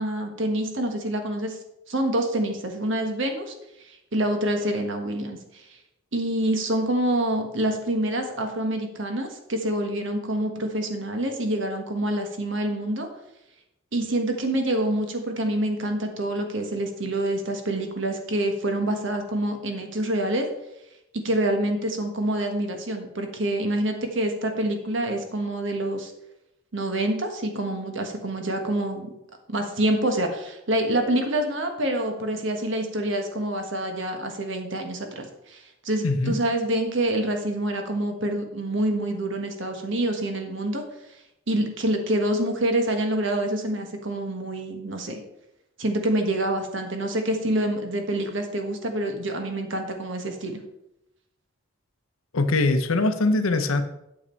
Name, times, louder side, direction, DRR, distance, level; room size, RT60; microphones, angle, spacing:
voice 1, 0.0-1.6 1.9-3.5 3.8-5.7 6.1-13.1 13.9-20.5 21.1-26.1 26.7-29.2 29.5-40.8 41.5-45.2 45.8-50.6, right 1 dB, 60° right, 4 dB, 1.4 m, -26 dB
voice 2, 36.0-36.3 52.3-53.8, left 2 dB, 75° left, 9 dB, 0.9 m, -22 dB
8.6 x 7.3 x 4.5 m, 0.86 s
head